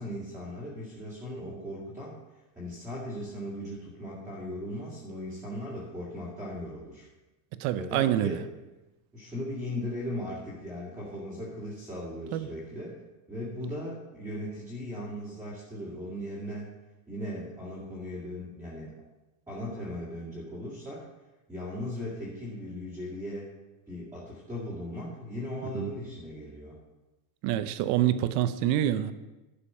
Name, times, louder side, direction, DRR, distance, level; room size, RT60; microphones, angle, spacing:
voice 1, 0.0-2.1 2.6-7.1 7.7-8.4 9.1-13.0 13.3-16.7 17.1-18.9 19.5-21.1 21.5-23.5 23.9-26.8, left 1 dB, 5° right, -8 dB, 2.0 m, -38 dB
voice 2, 7.6-8.4 12.3-12.5 25.7-25.9 27.4-29.1, right 12 dB, 45° right, 12 dB, 0.6 m, -26 dB
11.5 x 5.2 x 5.5 m, 1.1 s
supercardioid pair, 145°, 47 cm